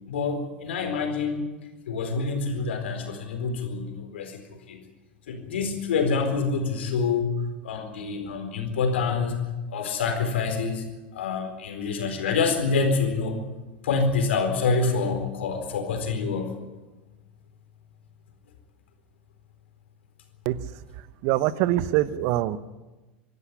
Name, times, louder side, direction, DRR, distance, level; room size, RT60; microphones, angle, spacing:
voice 1, 0.1-1.4 1.9-4.4 4.7-4.8 5.3-7.3 7.6-9.4 9.7-10.8 11.1-13.4 13.8-16.5, left 4 dB, 75° left, 5 dB, 4.3 m, -26 dB
voice 2, 21.2-22.6, right 14 dB, 55° right, 16 dB, 1.0 m, -23 dB
24.5 x 12.0 x 9.8 m, 1.2 s
hypercardioid pair, 85°, 6 cm